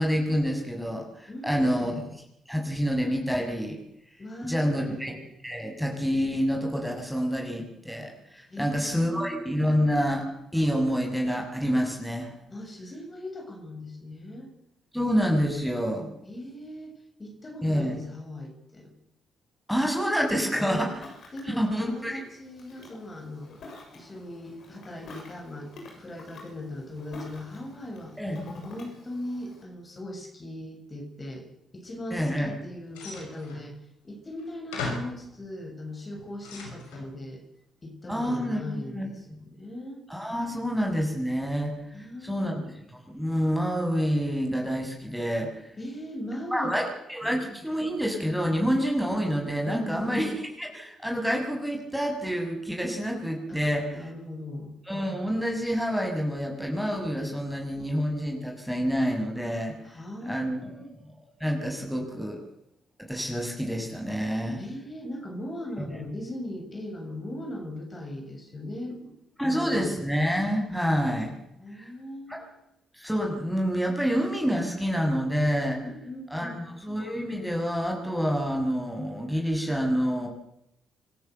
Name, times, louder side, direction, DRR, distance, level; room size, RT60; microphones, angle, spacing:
voice 1, 0.0-2.0 2.5-3.8 4.4-5.2 5.4-10.2 10.5-12.3 14.9-16.1 17.6-18.0 19.7-20.9 21.4-22.2 28.2-28.4 32.1-32.5 38.1-39.1 40.1-42.6 43.1-45.7 46.5-54.0 54.9-59.7 60.2-60.7 61.4-62.4 63.0-64.6 65.8-66.0 69.4-71.3 71.7-71.9 72.3-72.4 72.9-75.8 76.3-80.3, equal, ahead, 1 dB, 6.6 m, -28 dB
voice 2, 1.3-2.0 4.2-5.0 8.5-9.4 12.5-14.5 16.2-18.9 20.6-20.9 21.3-23.5 23.9-28.2 28.6-31.5 31.7-33.8 34.0-37.4 37.8-40.0 41.9-42.7 45.8-46.7 47.2-47.6 49.6-50.4 53.5-53.6 53.9-54.8 59.8-61.0 64.6-69.1 69.4-69.9 71.6-72.4 75.8-76.6, left 1 dB, 35° left, 2 dB, 7.2 m, -39 dB
Ocean, 20.6-29.6, left 2 dB, 60° left, 7.4 m, -47 dB
sound 1, 32.9-33.7 34.4-34.5 34.7-35.2 35.9-37.1, left 3 dB, 80° left, 5.7 m, -37 dB
26.5 x 13.5 x 8.1 m, 0.83 s
hypercardioid pair, 45°, 0 cm